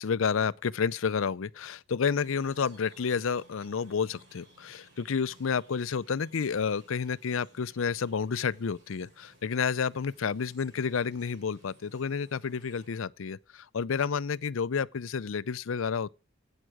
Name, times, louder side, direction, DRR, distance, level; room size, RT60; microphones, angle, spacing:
voice 1, 0.0-16.1, left 6 dB, 75° left, 0.5 m, -30 dB
sound 1, 2.1-13.0, right 1 dB, 55° right, 7.1 m, -59 dB
11.0 x 8.9 x 4.9 m
head